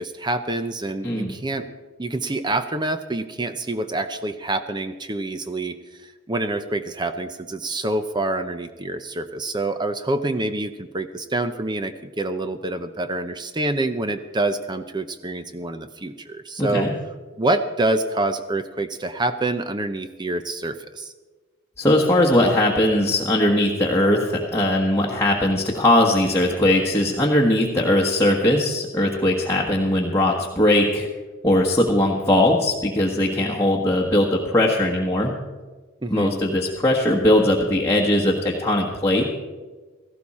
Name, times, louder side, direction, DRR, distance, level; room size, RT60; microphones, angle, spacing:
voice 1, 0.0-1.7 2.0-5.8 6.3-16.9 17.4-21.1 36.0-36.3, right 2 dB, 20° right, 9 dB, 0.6 m, -26 dB
voice 2, 16.6-16.9 21.8-31.1 31.4-35.3 36.1-39.3, left 1 dB, 10° left, -3 dB, 1.4 m, -20 dB
17.5 x 15.0 x 4.2 m, 1.3 s
head